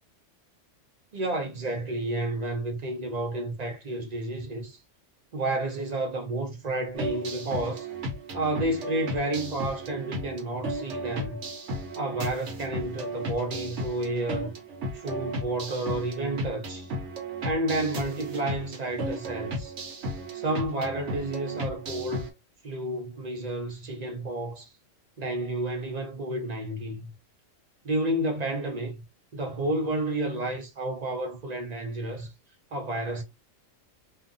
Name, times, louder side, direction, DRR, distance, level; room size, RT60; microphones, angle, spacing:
voice 1, 1.1-4.8 5.3-7.9 8.3-11.4 12.0-14.5 15.0-16.9 17.4-19.7 20.3-22.3 22.6-24.7 25.2-27.1 27.8-29.0 29.3-32.3 32.7-33.2, right 1 dB, 45° right, 0.6 m, -31 dB
sound 1, 6.9-22.3, right 1 dB, 70° right, 1.1 m, -35 dB
2.5 x 2.4 x 2.5 m
omnidirectional pair, 1.3 m